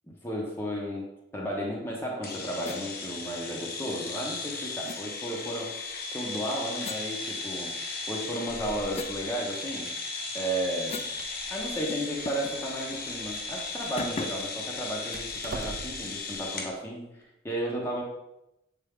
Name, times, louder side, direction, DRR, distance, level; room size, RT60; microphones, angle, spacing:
voice 1, 0.2-5.7 6.1-7.7 8.1-9.9 10.3-11.0 11.5-18.0, right 1 dB, 10° left, -3 dB, 1.0 m, -33 dB
sound 1, 2.2-16.7, left 3 dB, 55° left, 1.0 m, -36 dB
sound 2, 2.6-2.9 4.8-5.0 6.8-7.8 8.3-11.2 11.5-11.6 11.9-12.6 12.9-13.1 14.0-14.5, left 4 dB, 35° left, 0.4 m, -41 dB
Door, 10.6-16.2, right 4 dB, 45° right, 0.4 m, -45 dB
7.1 x 4.4 x 3.6 m, 0.88 s
head